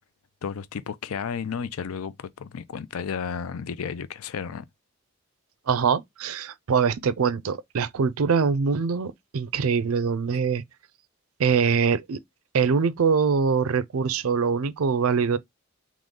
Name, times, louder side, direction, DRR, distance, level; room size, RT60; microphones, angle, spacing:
voice 1, 0.4-4.7, left 6 dB, 90° left, 0.5 m, -33 dB
voice 2, 5.7-10.6 11.4-12.2 12.5-15.4, right 5 dB, 85° right, 0.5 m, -23 dB
3.7 x 3.1 x 3.7 m
head